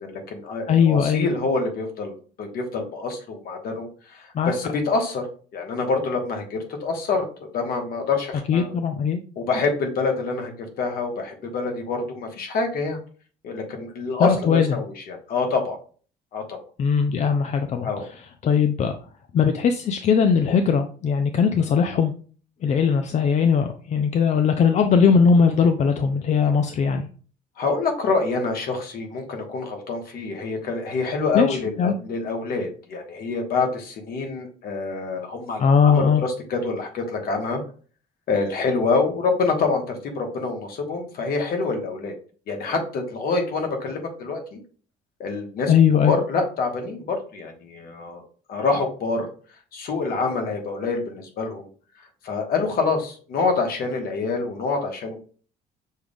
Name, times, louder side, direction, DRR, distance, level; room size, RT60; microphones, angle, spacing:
voice 1, 0.0-5.3 5.5-7.3 7.5-8.7 9.4-10.5 10.8-13.0 13.4-15.8 16.3-16.6 17.8-18.1 27.6-37.6 38.3-42.1 42.5-44.6 45.2-45.7 46.0-48.2 48.5-49.3 49.7-51.7 52.2-55.2, left 4 dB, 60° left, 3 dB, 1.4 m, -26 dB
voice 2, 0.7-1.3 4.3-4.5 8.5-9.2 14.2-14.8 16.8-18.1 18.4-18.9 19.3-22.1 22.6-27.1 31.3-31.9 35.6-36.2 45.7-46.2, left 6 dB, 45° left, 6 dB, 0.5 m, -19 dB
6.2 x 2.4 x 3.5 m, 0.41 s
cardioid pair, 110°, 17 cm